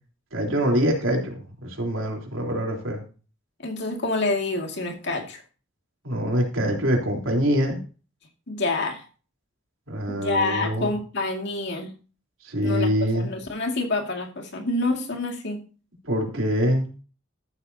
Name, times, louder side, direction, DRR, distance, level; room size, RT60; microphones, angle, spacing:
voice 1, 0.3-3.0 6.0-7.8 9.9-10.9 12.4-13.3 16.1-16.9, equal, 90° right, 3.7 m, -24 dB
voice 2, 3.6-5.4 8.5-9.0 10.1-11.9 12.6-15.6, left 2 dB, 60° left, 2.2 m, -27 dB
14.0 x 8.2 x 2.8 m
head